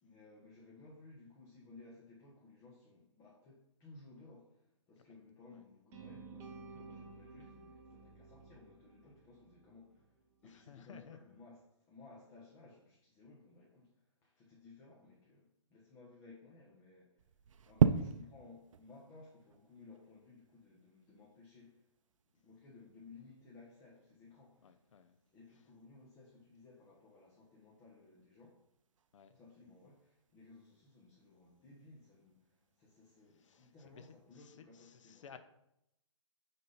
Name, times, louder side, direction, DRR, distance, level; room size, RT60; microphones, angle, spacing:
voice 1, 0.0-17.3 17.7-21.9 22.3-25.0 25.3-28.6 29.3-35.4, left 3 dB, 20° left, 1.1 m, -59 dB
sound 1, 5.9-10.0, right 4 dB, 15° right, 0.9 m, -53 dB
voice 2, 10.4-11.2 24.6-25.2 29.1-29.4 33.2-35.4, left 7 dB, 65° left, 0.7 m, -57 dB
sound 2, 17.2-34.3, right 7 dB, 70° right, 0.5 m, -41 dB
9.1 x 3.7 x 4.0 m
hypercardioid pair, 150°, 17 cm